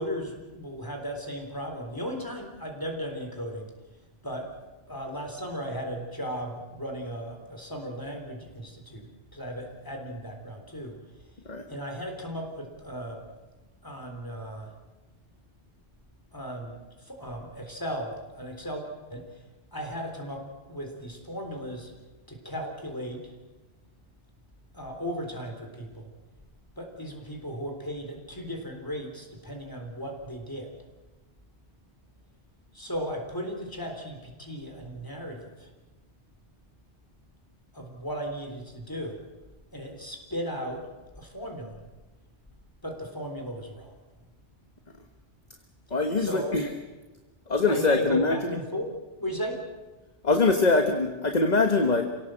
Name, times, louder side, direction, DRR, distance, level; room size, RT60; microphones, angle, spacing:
voice 1, 0.0-3.7 4.2-4.5 4.9-11.0 11.7-13.2 13.8-14.7 16.3-18.8 19.1-19.4 19.7-21.9 22.3-23.3 24.7-26.1 26.8-30.7 32.7-35.7 37.7-39.2 39.7-40.8 41.2-41.8 42.8-44.0 46.2-46.6 47.7-48.9 49.2-49.6, equal, 20° left, 3 dB, 3.8 m, -36 dB
voice 2, 45.9-46.7 47.5-48.4 50.2-52.0, left 3 dB, 40° left, 5 dB, 1.5 m, -23 dB
27.5 x 17.5 x 7.8 m, 1.2 s
omnidirectional pair, 1.2 m